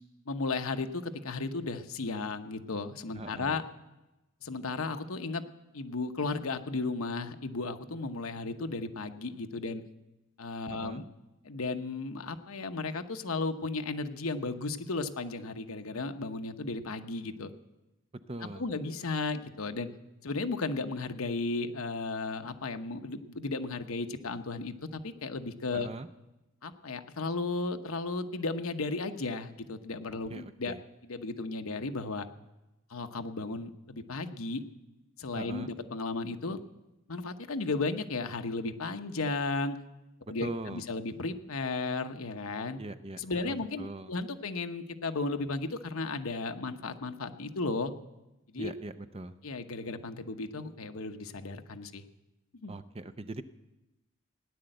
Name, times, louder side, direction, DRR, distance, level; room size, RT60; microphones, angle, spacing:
voice 1, 0.3-3.6 4.4-5.4 5.7-9.8 10.4-11.0 11.4-17.5 18.5-19.9 20.2-25.9 26.6-30.7 31.0-32.3 32.9-34.6 35.2-36.6 37.1-39.8 40.3-42.8 43.2-47.9 48.5-48.7 49.4-52.0 52.6-52.7, left 3 dB, 75° left, 8 dB, 0.9 m, -34 dB
voice 2, 3.1-3.6 10.7-11.1 18.3-18.6 25.7-26.1 30.3-30.8 35.3-35.7 40.4-40.8 42.8-44.1 48.6-49.3 52.7-53.4, right 2 dB, 25° right, 10 dB, 0.5 m, -41 dB
17.0 x 10.0 x 7.8 m, 1.0 s
head